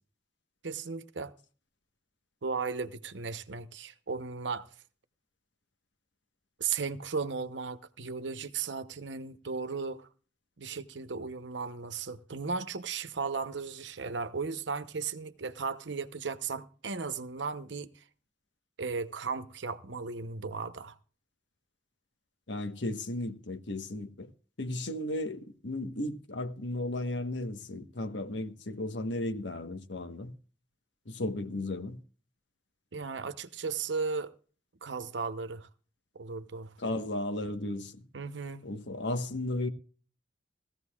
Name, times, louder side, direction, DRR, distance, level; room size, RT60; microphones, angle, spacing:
voice 1, 0.6-1.3 2.4-4.7 6.6-10.1 10.6-17.9 18.8-20.9 32.9-34.3 34.8-35.7 36.1-36.7 38.1-38.7, right 5 dB, 80° right, 0.9 m, -36 dB
voice 2, 22.5-24.3 24.6-30.3 31.1-32.0 36.8-38.0 38.6-39.7, left 1 dB, 80° left, 1.3 m, -35 dB
18.0 x 15.0 x 2.4 m
head